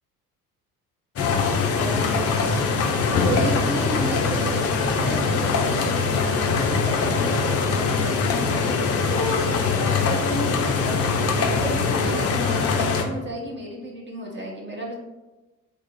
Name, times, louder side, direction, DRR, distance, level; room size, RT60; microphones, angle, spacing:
sound 1, 1.2-13.0, left 4 dB, 35° left, 0.5 m, -22 dB
voice 1, 1.7-2.5 3.1-14.9, equal, 25° right, -2 dB, 1.0 m, -33 dB
2.8 x 2.4 x 4.2 m, 1.1 s
figure-of-eight pair, 50°, 44 cm